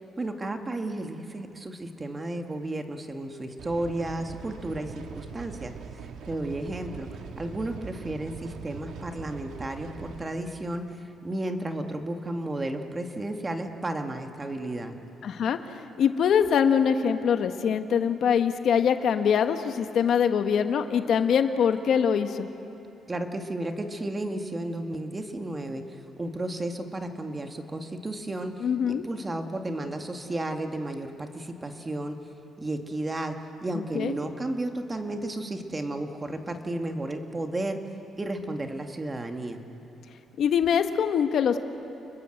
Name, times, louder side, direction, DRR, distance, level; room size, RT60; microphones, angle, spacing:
voice 1, 0.2-15.0 23.1-32.2 32.6-37.8 38.2-39.6, right 1 dB, 25° right, 5 dB, 2.1 m, -33 dB
sound 1, 3.6-10.3, right 6 dB, 75° right, 1.9 m, -42 dB
voice 2, 15.2-15.6 16.0-22.5 28.6-29.0 33.9-34.1 40.4-41.6, left 7 dB, 65° left, 8 dB, 1.3 m, -23 dB
30.0 x 21.5 x 7.9 m, 2.9 s
cardioid pair, 90°, 0 cm